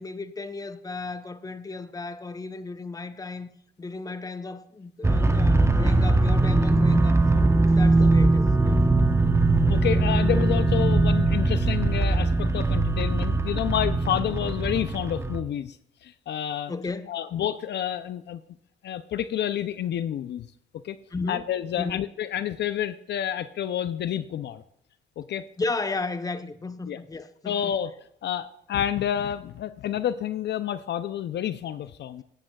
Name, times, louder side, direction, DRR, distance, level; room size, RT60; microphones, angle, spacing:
voice 1, 0.0-3.5 3.8-8.8 9.2-9.4 16.7-17.1 21.1-21.4 21.8-22.0 25.6-27.7, left 3 dB, 20° left, 0.8 m, -34 dB
sound 1, 5.0-15.4, right 2 dB, 15° right, 0.8 m, -21 dB
voice 2, 9.7-15.8 16.0-16.7 17.1-18.4 18.8-20.5 20.8-21.0 21.3-24.6 25.2-25.5 26.9-27.0 27.4-27.9 28.2-32.2, left 10 dB, 60° left, 0.5 m, -29 dB
17.5 x 8.9 x 2.3 m
cardioid pair, 90°, 20 cm